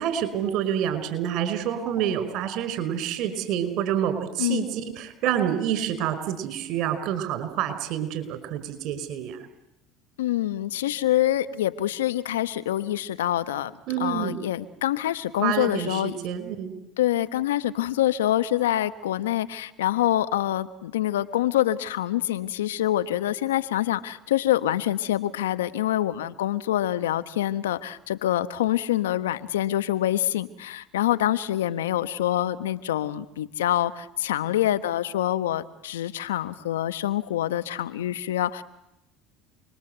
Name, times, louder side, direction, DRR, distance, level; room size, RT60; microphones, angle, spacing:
voice 1, 0.0-9.4 13.9-14.4 15.4-16.7, right 10 dB, 60° right, 10 dB, 5.3 m, -28 dB
voice 2, 10.2-13.7 14.0-16.2 17.0-38.6, left 13 dB, 90° left, 13 dB, 1.2 m, -26 dB
29.0 x 21.5 x 8.1 m, 0.86 s
hypercardioid pair, 85°, 0 cm